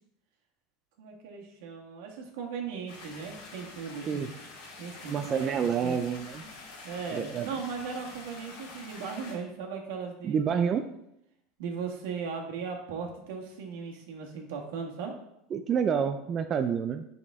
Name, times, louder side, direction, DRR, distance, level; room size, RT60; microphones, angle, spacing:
voice 1, 1.0-4.4 4.8-6.0 6.8-10.7 11.6-15.1, right 5 dB, 80° right, 1 dB, 1.5 m, -38 dB
sound 1, 2.9-9.3, left 3 dB, 90° left, 2.3 m, -46 dB
voice 2, 5.1-6.4 7.1-7.5 10.2-10.8 15.5-17.0, right 7 dB, 30° right, 7 dB, 0.4 m, -28 dB
6.6 x 5.3 x 3.6 m, 0.79 s
supercardioid pair, 145°, 0 cm